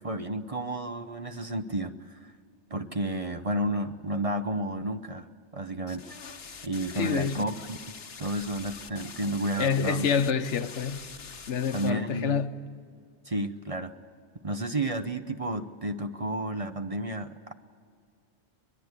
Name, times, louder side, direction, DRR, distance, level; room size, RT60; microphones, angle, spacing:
voice 1, 0.0-2.3 2.7-5.3 5.5-6.2 6.6-7.8 8.2-10.1 11.7-12.4 13.3-13.9 14.4-17.5, right 1 dB, 35° right, 0.8 m, -31 dB
sound 1, 5.9-11.9, left 5 dB, 60° left, 1.3 m, -44 dB
voice 2, 6.9-7.5 9.6-11.1 11.5-12.7, left 6 dB, 80° left, 1.2 m, -27 dB
23.0 x 21.5 x 8.2 m
omnidirectional pair, 1.2 m